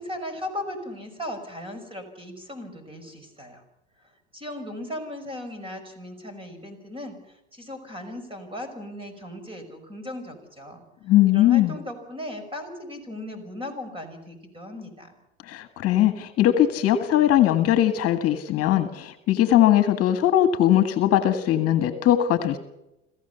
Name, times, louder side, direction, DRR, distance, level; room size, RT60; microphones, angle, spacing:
voice 1, 0.0-3.6 4.3-7.2 7.5-10.8 11.2-15.1, left 1 dB, 15° right, 8 dB, 5.8 m, -37 dB
voice 2, 11.1-11.7 15.5-22.6, left 12 dB, 45° left, 9 dB, 1.8 m, -20 dB
26.5 x 15.5 x 7.0 m, 0.89 s
hypercardioid pair, 100°, 35 cm